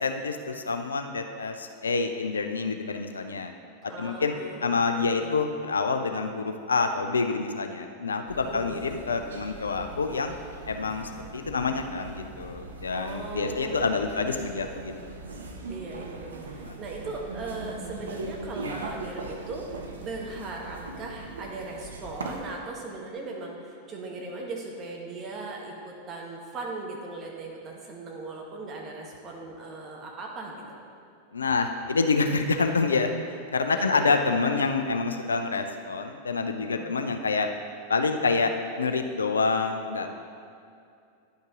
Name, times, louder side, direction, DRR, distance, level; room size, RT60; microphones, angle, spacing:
voice 1, 0.0-3.5 4.0-4.3 4.6-10.3 10.7-15.1 16.6-16.8 31.3-33.1 33.5-37.5 37.9-40.1, left 4 dB, 75° left, 6 dB, 0.4 m, -27 dB
voice 2, 3.8-5.5 8.3-8.8 12.9-14.0 15.7-30.8 33.7-34.2 36.6-36.9, right 3 dB, 30° right, -1 dB, 1.4 m, -38 dB
sound 1, 8.3-22.6, right 2 dB, 70° right, 0.7 m, -40 dB
10.0 x 5.3 x 3.8 m, 2.4 s
figure-of-eight pair, 90°, 0 cm